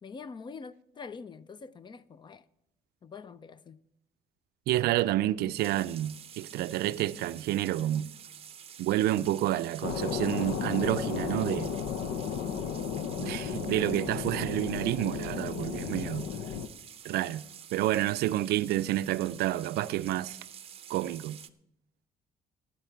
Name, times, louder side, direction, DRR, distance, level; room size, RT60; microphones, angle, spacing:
voice 1, 0.0-2.4 3.0-3.8, left 5 dB, 30° left, 0.5 m, -45 dB
voice 2, 4.7-8.1 8.8-11.7 13.2-16.3 17.0-20.4 20.9-21.4, right 14 dB, 85° right, 0.5 m, -29 dB
sound 1, 5.5-21.5, right 8 dB, 35° right, 0.6 m, -49 dB
sound 2, 9.8-16.7, left 7 dB, 85° left, 0.8 m, -34 dB
15.0 x 10.0 x 4.5 m
cardioid pair, 140°, 16 cm